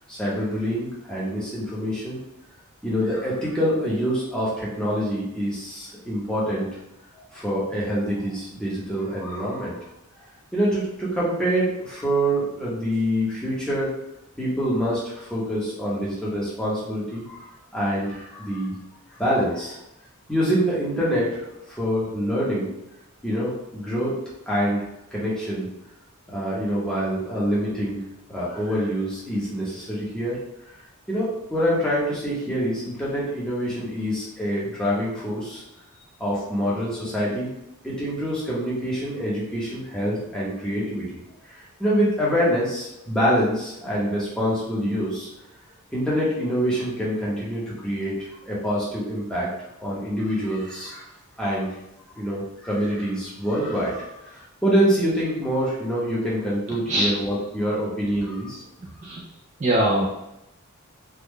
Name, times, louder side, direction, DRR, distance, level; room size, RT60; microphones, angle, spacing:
voice 1, 0.1-2.2 2.8-6.7 7.3-9.8 10.5-13.9 14.4-18.7 19.2-19.8 20.3-22.7 23.2-24.1 24.5-24.8 25.1-25.7 26.3-28.0 28.3-30.4 31.1-35.6 36.2-37.5 37.8-41.2 41.5-45.3 45.9-48.1 48.4-49.5 49.8-51.1 51.4-51.7 52.1-58.6, equal, 5° left, -7 dB, 0.9 m, -25 dB
voice 2, 59.6-60.1, right 1 dB, 30° right, -3 dB, 0.4 m, -22 dB
3.6 x 2.3 x 3.1 m, 0.87 s
head